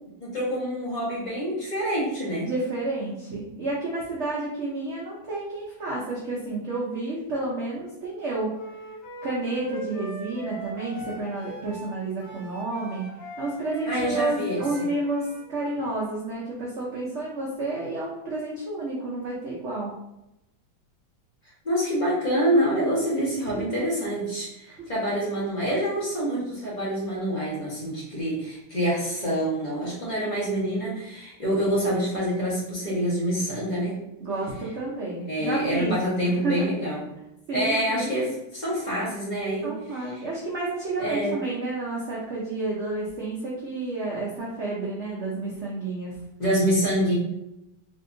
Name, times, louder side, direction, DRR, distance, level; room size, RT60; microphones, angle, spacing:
voice 1, 0.2-2.5 13.9-14.6 21.6-33.9 35.3-37.0 37.5-39.7 40.1-40.3 41.0-41.3 46.4-47.1, equal, 35° left, -7 dB, 0.8 m, -26 dB
voice 2, 2.4-8.5 9.2-13.1 13.4-19.9 23.1-23.6 34.2-36.0 36.4-36.7 37.5-38.1 39.6-46.1, right 2 dB, 80° right, -5 dB, 0.6 m, -30 dB
Wind instrument woodwind instrument, 8.6-16.1, right 1 dB, 65° left, 1.3 m, -40 dB
3.5 x 2.7 x 2.5 m, 0.88 s
omnidirectional pair, 2.0 m